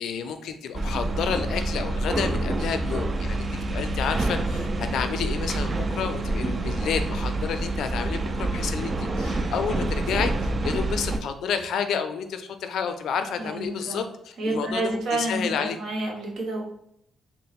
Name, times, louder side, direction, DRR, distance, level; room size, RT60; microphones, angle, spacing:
voice 1, 0.0-3.4 3.7-14.1 14.5-15.8, left 7 dB, 75° left, 8 dB, 0.4 m, -30 dB
sound 1, 0.7-11.2, right 2 dB, 35° right, 0.4 m, -27 dB
voice 2, 13.4-14.0 14.4-16.6, right 2 dB, 75° right, 0 dB, 1.1 m, -29 dB
3.8 x 2.1 x 4.1 m, 0.73 s
cardioid pair, 90°, 0 cm